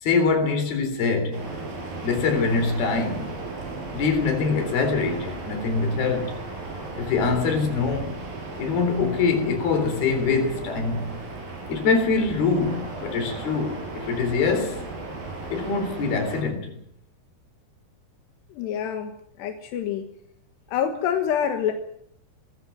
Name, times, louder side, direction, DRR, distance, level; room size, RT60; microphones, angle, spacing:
voice 1, 0.0-1.5 2.0-3.4 3.9-6.4 7.0-8.1 8.6-11.1 11.7-14.8 15.5-16.8, left 4 dB, 65° left, 5.5 m, -24 dB
sound 1, 1.3-16.4, right 3 dB, 60° right, 6.4 m, -36 dB
voice 2, 18.5-19.1 19.4-20.1 20.7-21.7, left 9 dB, 90° left, 3.7 m, -26 dB
21.5 x 15.5 x 9.3 m
omnidirectional pair, 4.7 m